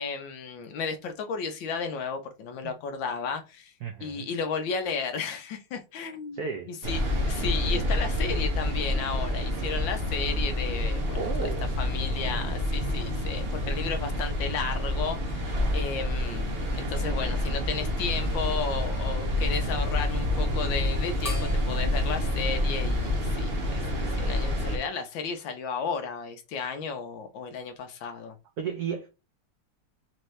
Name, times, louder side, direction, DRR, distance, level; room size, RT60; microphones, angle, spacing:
voice 1, 0.0-3.7 4.0-6.4 6.7-7.0 7.3-11.5 11.8-28.3, left 5 dB, 70° left, 1.3 m, -33 dB
voice 2, 3.8-4.3 6.3-6.7 11.2-11.7 28.6-29.1, right 6 dB, 80° right, 0.8 m, -33 dB
sound 1, 6.8-24.8, left 1 dB, 50° right, 0.7 m, -28 dB
sound 2, 21.2-24.0, left 1 dB, 15° left, 0.6 m, -43 dB
4.4 x 2.7 x 3.1 m
omnidirectional pair, 2.4 m